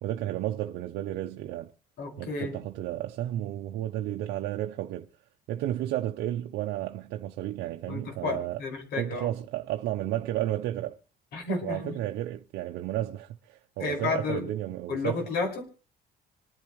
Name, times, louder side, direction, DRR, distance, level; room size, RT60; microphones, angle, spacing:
voice 1, 0.0-1.7 2.2-5.1 5.5-8.6 9.0-11.0 11.6-15.2, right 13 dB, 85° right, 0.7 m, -32 dB
voice 2, 2.0-2.5 7.9-9.3 11.3-12.0 13.8-14.4 14.9-15.7, left 3 dB, 75° left, 5.5 m, -31 dB
25.5 x 10.5 x 3.2 m
cardioid pair, 110°, 17 cm